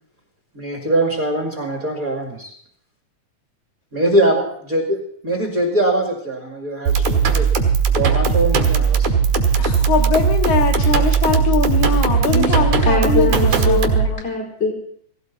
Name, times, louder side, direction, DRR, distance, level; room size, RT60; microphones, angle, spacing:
voice 1, 0.5-2.5 3.9-7.5 7.9-9.1, right 1 dB, 30° right, 1 dB, 2.3 m, -22 dB
sound 1, 6.9-14.1, right 6 dB, 90° right, 3.2 m, -17 dB
voice 2, 9.6-14.3, left 6 dB, 80° left, 2 dB, 3.2 m, -22 dB
voice 3, 12.8-14.7, left 3 dB, 20° left, -1 dB, 4.7 m, -21 dB
17.5 x 16.5 x 4.0 m, 0.64 s
omnidirectional pair, 3.4 m